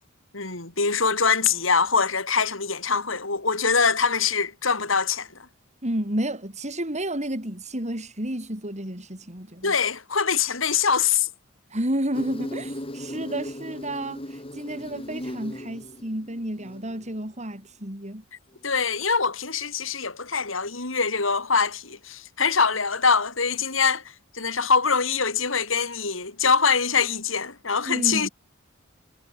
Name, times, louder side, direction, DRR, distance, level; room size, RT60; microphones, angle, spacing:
voice 1, 0.3-5.3 9.6-11.3 18.6-24.0 24.3-28.3, left 5 dB, 75° left, 4.9 m, -23 dB
voice 2, 5.8-9.7 11.7-18.2 27.9-28.3, right 1 dB, 35° right, 7.7 m, -31 dB
Insect, 12.1-17.1, left 1 dB, 30° left, 5.8 m, -37 dB
head